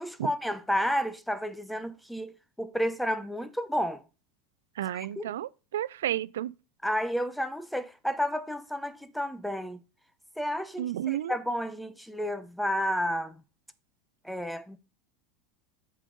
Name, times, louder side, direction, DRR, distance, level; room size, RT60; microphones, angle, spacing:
voice 1, 0.0-2.3 2.6-4.0 4.9-5.3 6.8-9.8 10.4-13.4 14.2-14.8, equal, ahead, 0.8 m, -31 dB
voice 2, 4.8-6.5 10.8-11.3, right 12 dB, 90° right, 0.3 m, -31 dB
8.3 x 5.2 x 3.8 m
supercardioid pair, 120°, 0 cm